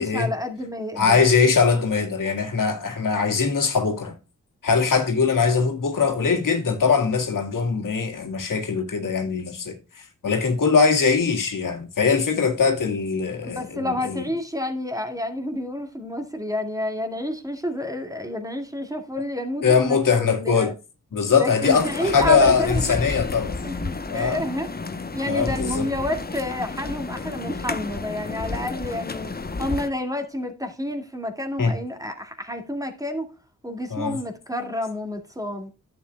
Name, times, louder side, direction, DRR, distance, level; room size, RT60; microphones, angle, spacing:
voice 1, 0.0-1.2 13.4-20.7 21.3-23.0 23.6-24.7 25.1-33.3 33.6-35.7, left 1 dB, 10° right, 2.2 m, -29 dB
voice 2, 1.0-4.1 4.6-9.7 10.2-14.2 19.6-20.7 21.1-23.5 24.1-24.4 25.3-25.8 31.6-31.7 33.9-34.1, left 5 dB, 85° left, 1.9 m, -21 dB
sound 1, 21.6-29.9, left 3 dB, 30° left, 0.9 m, -31 dB
11.0 x 7.8 x 2.3 m
cardioid pair, 65°, 32 cm